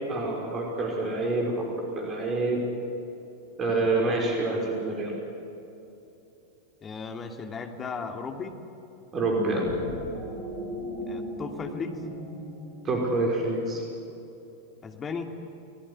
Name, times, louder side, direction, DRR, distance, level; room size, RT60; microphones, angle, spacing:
voice 1, 0.1-1.7 1.9-2.6 3.6-5.1 9.1-9.7 12.8-13.8, right 2 dB, 25° right, 0 dB, 5.5 m, -27 dB
voice 2, 6.8-8.5 11.1-12.0 14.8-15.3, left 5 dB, 20° left, 4 dB, 2.8 m, -35 dB
sound 1, 9.3-13.9, equal, 75° left, 7.3 m, -38 dB
29.5 x 19.0 x 10.0 m, 2.9 s
figure-of-eight pair, 90°, 0 cm